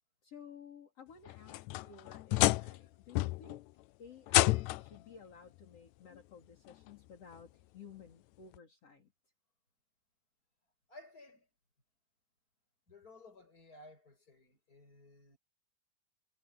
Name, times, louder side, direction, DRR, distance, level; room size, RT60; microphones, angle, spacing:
voice 1, 0.2-3.6 4.0-9.1, left 6 dB, 45° left, 4.4 m, -55 dB
sound 1, 1.3-2.8 3.2-3.6 4.3-5.0 6.1-6.2 6.9-7.0 8.6-8.7, left 18 dB, 80° left, 1.7 m, -30 dB
voice 2, 10.9-11.5 12.9-15.4, left 2 dB, 25° left, 6.7 m, -56 dB
omnidirectional pair, 3.8 m